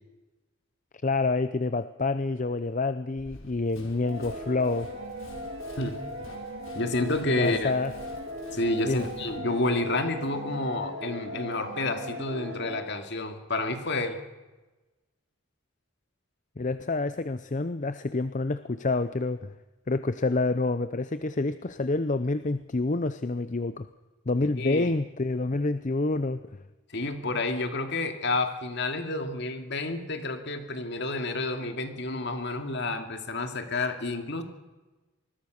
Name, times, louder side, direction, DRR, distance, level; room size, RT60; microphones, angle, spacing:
voice 1, 1.0-4.9 7.3-7.9 8.9-9.1 16.6-19.5 19.9-23.9 24.3-26.4, left 3 dB, 35° left, 12 dB, 0.6 m, -28 dB
Run, 3.2-9.4, left 1 dB, 80° left, 5.1 m, -50 dB
sound 1, 4.0-12.8, equal, 65° right, 6.2 m, -38 dB
voice 2, 6.7-7.7 8.5-14.2 24.6-24.9 26.9-34.4, left 2 dB, 55° left, 6 dB, 2.6 m, -29 dB
25.0 x 21.0 x 6.5 m, 1.1 s
head